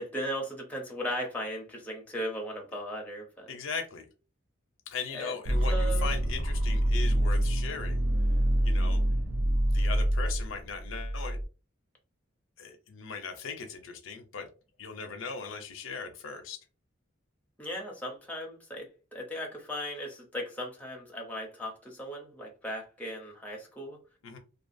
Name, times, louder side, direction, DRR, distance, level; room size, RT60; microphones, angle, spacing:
voice 1, 0.0-3.5 5.1-5.3 5.7-6.2 17.6-24.0, equal, 10° left, 0.6 m, -37 dB
voice 2, 3.5-4.1 4.9-8.0 8.6-9.0 9.7-11.4 12.6-14.5 14.8-16.6 24.2-24.4, left 5 dB, 85° left, 0.5 m, -38 dB
sound 1, 5.5-11.4, right 1 dB, 90° right, 0.5 m, -26 dB
2.5 x 2.3 x 2.5 m
head